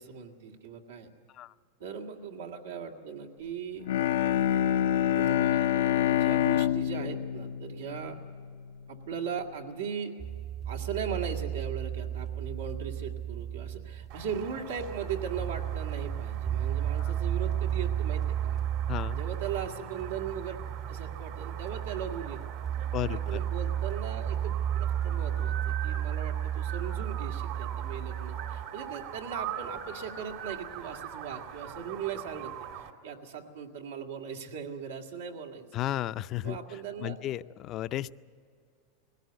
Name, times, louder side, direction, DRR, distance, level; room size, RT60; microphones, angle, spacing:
voice 1, 0.0-1.1 1.8-3.9 5.1-8.2 8.9-10.2 10.7-18.6 19.1-20.6 20.9-22.4 23.0-35.7 36.4-37.2, right 7 dB, 85° right, 3 dB, 2.0 m, -38 dB
Bowed string instrument, 3.8-8.7, left 11 dB, 85° left, 0.6 m, -27 dB
sound 1, 10.2-28.6, right 10 dB, 25° right, 0.8 m, -33 dB
sound 2, 14.1-32.9, right 9 dB, 65° right, 1.9 m, -43 dB
voice 2, 18.9-19.2 22.9-23.4 35.7-38.1, left 14 dB, 40° left, 14 dB, 0.5 m, -34 dB
20.5 x 17.0 x 8.0 m, 2.3 s
supercardioid pair, 125°, 0 cm